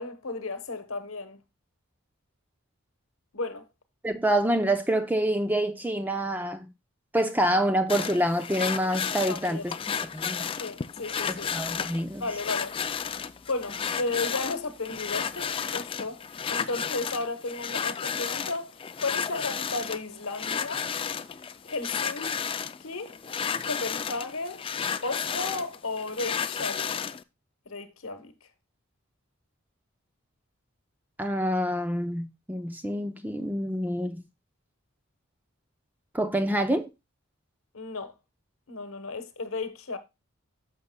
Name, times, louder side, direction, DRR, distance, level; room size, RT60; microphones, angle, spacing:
voice 1, 0.0-1.4 3.3-3.7 9.3-9.9 10.6-11.5 12.2-12.7 13.5-16.2 16.5-18.7 19.0-20.9 21.6-22.4 22.8-23.2 23.6-24.7 25.0-26.9 27.7-28.3 37.7-38.1 38.7-40.0, left 3 dB, 75° left, 1.0 m, -34 dB
voice 2, 4.0-6.7 7.1-9.7 10.1-10.5 11.3-12.2 31.2-34.2 36.1-36.9, right 1 dB, 10° right, 0.6 m, -27 dB
sound 1, 7.9-27.2, left 7 dB, 25° left, 0.3 m, -33 dB
11.0 x 6.7 x 2.2 m
head